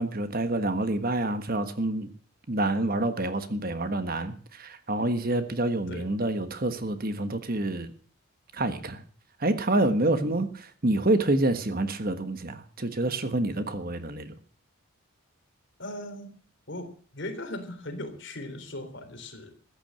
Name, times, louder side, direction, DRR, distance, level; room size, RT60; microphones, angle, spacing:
voice 1, 0.0-2.1 2.5-7.9 8.5-9.0 9.4-14.3, right 2 dB, 40° right, 10 dB, 1.4 m, -27 dB
voice 2, 10.0-10.4 15.8-16.3 16.7-19.5, left 1 dB, 55° left, 6 dB, 3.5 m, -38 dB
14.5 x 9.9 x 7.7 m, 0.43 s
head